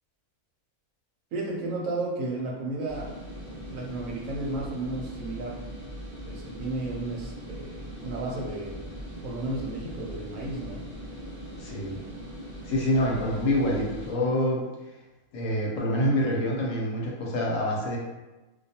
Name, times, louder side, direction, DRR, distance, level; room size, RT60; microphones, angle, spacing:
voice 1, 1.3-3.1 3.7-5.6 6.2-8.9 9.2-10.9, right 2 dB, 70° right, -2 dB, 0.9 m, -33 dB
sound 1, 2.9-14.1, equal, 20° right, 0.5 m, -40 dB
voice 2, 11.6-12.0 12.7-14.7 15.3-18.0, left 1 dB, 70° left, -3 dB, 0.9 m, -26 dB
2.4 x 2.2 x 2.7 m, 1.1 s
omnidirectional pair, 1.5 m